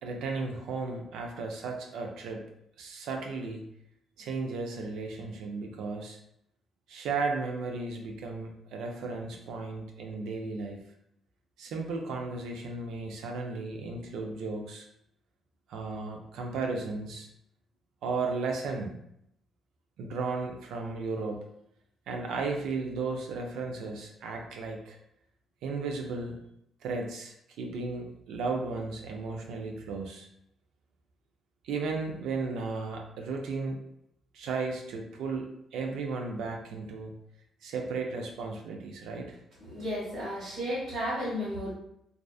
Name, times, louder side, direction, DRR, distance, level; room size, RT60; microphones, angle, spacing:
voice 1, 0.0-2.4 2.8-3.6 4.2-6.2 6.9-10.8 11.6-14.9 15.7-17.3 18.0-19.0 20.0-21.4 22.1-25.0 25.6-26.4 26.8-30.3 31.6-33.8 34.3-35.5 35.7-37.1 37.6-39.3, right 4 dB, 85° right, 2 dB, 0.4 m, -34 dB
voice 2, 39.6-41.7, equal, 55° right, -8 dB, 1.3 m, -33 dB
2.4 x 2.3 x 2.3 m, 0.76 s
cardioid pair, 90°, 0 cm